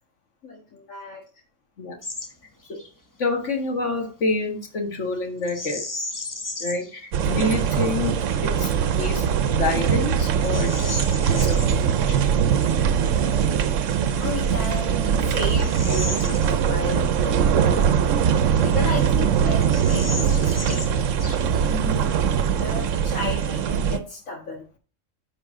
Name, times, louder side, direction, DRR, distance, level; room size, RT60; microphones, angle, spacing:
voice 1, 0.4-1.2 13.9-18.1 18.6-20.8 21.9-22.3 22.6-24.6, left 2 dB, 90° left, 2.1 m, -33 dB
Bird vocalization bird call bird song, 2.0-2.3 2.6-2.9 5.4-6.9 7.5-7.6 8.2-8.6 9.2-9.3 9.8-11.7 13.8-13.9 14.6-17.0 17.3-17.4 18.1-18.9 19.2-19.3 19.6-21.7, left 2 dB, 20° left, 0.8 m, -35 dB
voice 2, 3.2-5.8 6.6-8.7 9.0-9.3 9.5-11.0 11.3-11.6 12.1-12.3 21.6-22.0, left 2 dB, 70° left, 1.9 m, -27 dB
sound 1, 7.1-24.0, right 8 dB, 80° right, 1.0 m, -21 dB
10.0 x 4.7 x 3.7 m
omnidirectional pair, 1.3 m